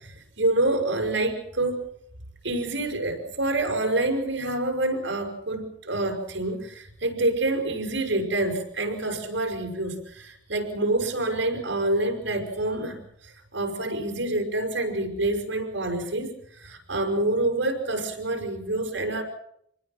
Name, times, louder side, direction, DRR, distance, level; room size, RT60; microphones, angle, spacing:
voice 1, 0.0-1.8 2.4-13.0 13.2-19.2, right 2 dB, 70° right, 4 dB, 6.3 m, -27 dB
27.0 x 20.5 x 6.1 m, 0.70 s
head